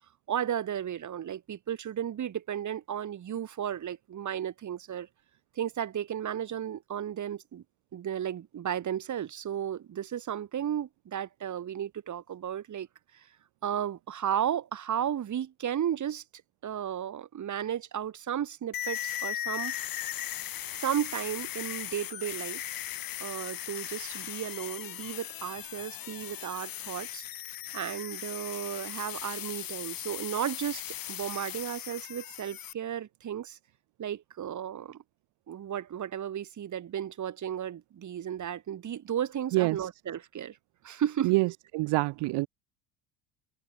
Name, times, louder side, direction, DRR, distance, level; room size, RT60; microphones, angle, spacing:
voice 1, 0.3-5.1 5.5-7.6 7.9-12.9 13.1-13.3 13.6-16.2 16.6-19.7 20.8-22.8 23.2-27.2 27.7-30.8 31.1-33.6 34.0-35.0 35.5-40.6 40.8-41.3, right 9 dB, 40° right, 3.0 m, -34 dB
sound 1, 18.7-32.7, left 12 dB, 50° left, 3.1 m, -38 dB
voice 2, 39.5-39.9 41.2-42.5, right 22 dB, 60° right, 1.5 m, -26 dB
open air
hypercardioid pair, 85°, 45 cm